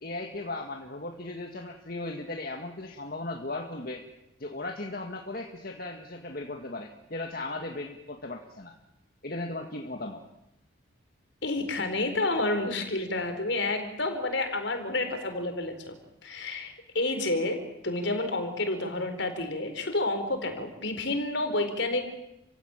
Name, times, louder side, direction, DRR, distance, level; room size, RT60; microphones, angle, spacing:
voice 1, 0.0-4.0 4.4-8.7 9.2-10.2, left 2 dB, 50° left, 2 dB, 2.0 m, -37 dB
voice 2, 11.4-15.9 16.2-17.6 17.8-22.0, left 2 dB, 65° left, 6 dB, 4.4 m, -29 dB
29.5 x 16.5 x 9.1 m, 0.86 s
head